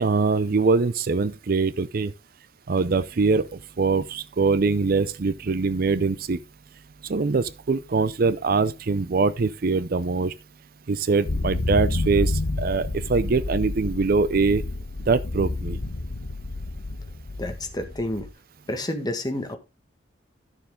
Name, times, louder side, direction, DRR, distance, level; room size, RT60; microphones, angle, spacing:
voice 1, 0.0-2.1 2.7-3.5 3.8-6.4 7.1-10.3 10.9-14.6 15.1-15.8, right 4 dB, 50° right, 0.5 m, -23 dB
sound 1, 11.3-18.3, left 2 dB, 70° left, 1.1 m, -29 dB
voice 2, 17.4-18.3 18.7-19.6, left 1 dB, 20° left, 1.6 m, -29 dB
12.0 x 6.9 x 3.6 m
head